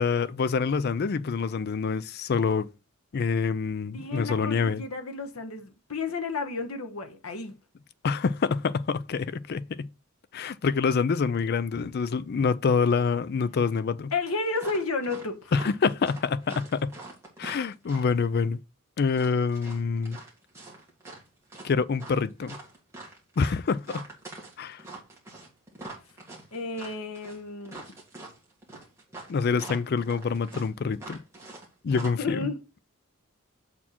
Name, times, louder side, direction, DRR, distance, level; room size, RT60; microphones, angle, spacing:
voice 1, 0.0-2.7 3.1-4.8 8.0-9.9 10.3-14.1 15.5-16.9 17.4-18.6 19.0-20.2 21.6-22.6 23.4-24.0 24.6-24.8 29.3-31.2 31.8-32.5, left 5 dB, 45° left, 0.4 m, -26 dB
voice 2, 3.9-7.5 11.7-11.9 14.1-15.5 26.5-27.8 32.2-32.6, left 3 dB, 80° left, 1.1 m, -32 dB
sound 1, 14.5-15.3 15.5-18.2 19.1-21.2 21.5-31.6 31.9-32.1, right 2 dB, 15° right, 2.0 m, -43 dB
7.1 x 4.3 x 4.3 m
head